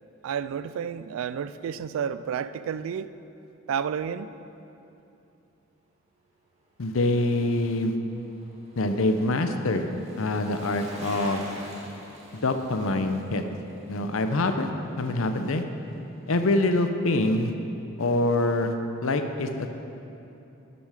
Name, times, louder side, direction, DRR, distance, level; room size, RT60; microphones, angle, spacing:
voice 1, 0.2-3.1 3.7-4.3, right 7 dB, 85° right, 14 dB, 0.3 m, -31 dB
voice 2, 6.8-8.0 8.8-9.8 10.2-11.4 12.3-13.4 13.9-14.7 15.0-15.6 16.3-17.5 18.0-18.7 19.0-19.7, left 2 dB, 85° left, 7 dB, 0.7 m, -25 dB
Bicycle, 7.3-15.6 15.9-16.0, right 1 dB, 35° right, 1.6 m, -46 dB
12.0 x 7.0 x 4.9 m, 2.9 s
head